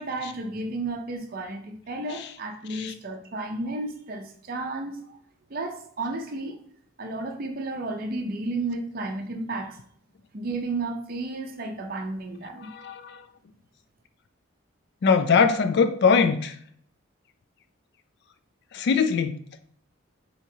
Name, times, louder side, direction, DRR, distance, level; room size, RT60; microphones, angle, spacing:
voice 1, 0.0-5.0 5.5-6.6 7.0-9.8 10.3-12.7, right 2 dB, 45° right, 0.5 m, -32 dB
voice 2, 12.6-13.2 15.0-16.6 18.7-19.4, left 5 dB, 55° left, 0.3 m, -22 dB
4.7 x 2.8 x 2.7 m
head